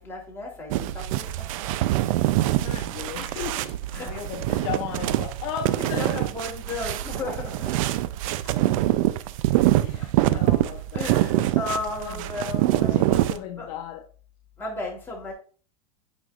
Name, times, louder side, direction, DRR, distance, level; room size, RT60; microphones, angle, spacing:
voice 1, 0.0-2.0 3.9-4.1 4.5-4.6 5.8-8.0 9.9-10.4 10.9-13.0 13.6-13.7 14.6-15.3, left 3 dB, 10° left, 3.2 m, -35 dB
sound 1, 0.7-13.4, right 15 dB, 70° right, 0.5 m, -24 dB
voice 2, 2.4-6.3 8.4-9.0 9.8-11.1 11.4-11.6 12.0-12.3 12.7-14.1, left 9 dB, 65° left, 0.9 m, -37 dB
8.9 x 5.3 x 2.5 m
supercardioid pair, 120°, 18 cm